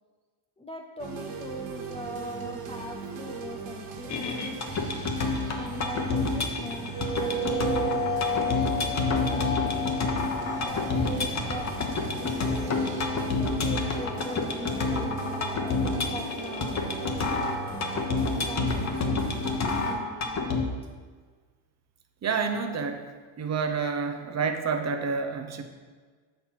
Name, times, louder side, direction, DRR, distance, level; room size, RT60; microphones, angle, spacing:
voice 1, 0.6-4.7 5.5-9.8 10.6-12.5 13.3-17.3 18.1-20.7, equal, 15° left, -1 dB, 0.3 m, -41 dB
sound 1, 1.0-20.0, right 4 dB, 80° right, 1.3 m, -39 dB
sound 2, 4.1-20.6, left 3 dB, 35° left, 0.9 m, -29 dB
sound 3, 6.9-18.3, left 1 dB, 85° left, 2.4 m, -35 dB
voice 2, 22.2-23.1 23.4-25.6, right 5 dB, 35° right, 5 dB, 0.7 m, -28 dB
6.9 x 4.5 x 5.7 m, 1.5 s
cardioid pair, 120°, 49 cm